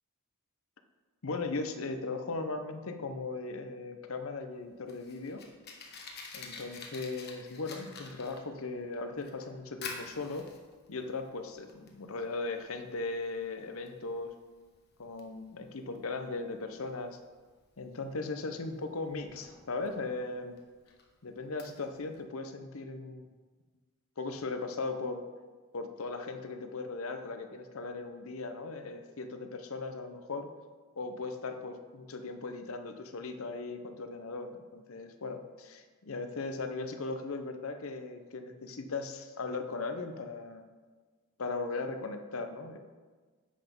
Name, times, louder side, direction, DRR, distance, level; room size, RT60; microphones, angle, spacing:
voice 1, 1.2-5.4 6.3-10.5 10.9-14.3 15.0-17.2 17.8-20.6 21.2-23.2 24.2-25.2 25.7-30.5 31.0-40.6 41.4-42.8, left 3 dB, 70° left, 8 dB, 0.7 m, -38 dB
Fire, 4.5-22.2, left 4 dB, 45° left, 1.1 m, -50 dB
8.2 x 6.0 x 5.2 m, 1.4 s
head